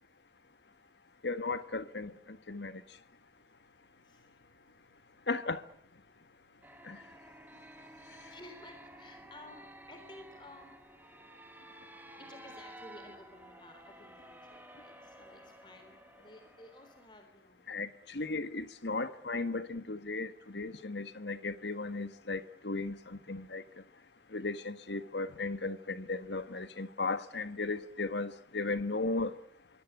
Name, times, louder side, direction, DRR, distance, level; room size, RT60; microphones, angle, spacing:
voice 1, 1.2-2.8 5.3-5.7 6.8-7.0 8.2-8.3 17.7-23.8 24.3-29.4, left 3 dB, 75° left, 1.6 m, -36 dB
voice 2, 2.6-3.0 3.5-3.6 3.9-5.3 6.0-10.7 12.2-17.6 25.6-25.8, left 1 dB, 25° left, 3.7 m, -56 dB
sound 1, 6.6-17.1, right 1 dB, 10° right, 2.2 m, -53 dB
24.5 x 17.0 x 9.5 m
head